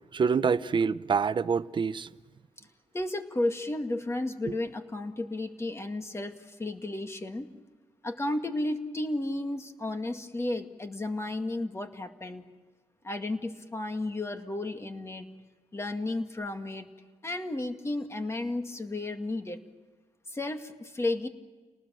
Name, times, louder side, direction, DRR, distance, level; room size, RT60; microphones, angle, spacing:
voice 1, 0.1-2.1 4.5-4.6, right 5 dB, 45° right, 0.7 m, -26 dB
voice 2, 2.9-7.5 8.0-12.5 13.0-15.3 15.7-16.8 17.2-19.6 20.3-21.3, left 2 dB, 25° left, 2.1 m, -33 dB
29.5 x 19.5 x 7.6 m
cardioid pair, 115°, 12 cm